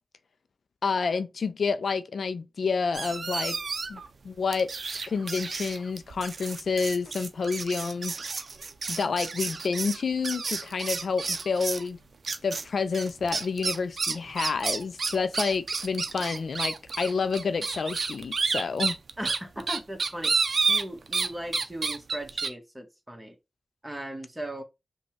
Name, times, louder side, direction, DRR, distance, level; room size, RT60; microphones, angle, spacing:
voice 1, 0.8-3.6 3.9-4.7 5.1-8.2 8.9-12.0 12.4-19.0, left 5 dB, 75° left, 0.4 m, -29 dB
sound 1, 2.9-4.1 4.5-11.9 12.2-12.6 12.9-21.3 21.5-22.5, right 4 dB, 65° right, 0.5 m, -30 dB
voice 2, 19.2-20.3 20.7-23.3 23.8-24.6, right 1 dB, 15° right, 1.2 m, -38 dB
5.1 x 2.2 x 3.1 m
cardioid pair, 50°, 0 cm